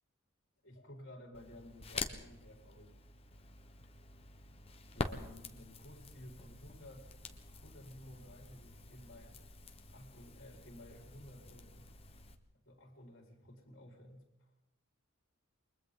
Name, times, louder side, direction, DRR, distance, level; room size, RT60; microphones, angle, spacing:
voice 1, 0.6-2.9 4.9-7.1 7.6-9.4 9.9-11.9 12.6-14.5, left 1 dB, 55° left, 0 dB, 5.1 m, -54 dB
Crackle, 1.3-12.4, left 3 dB, 25° left, 1.3 m, -47 dB
29.0 x 23.0 x 4.1 m, 0.96 s
head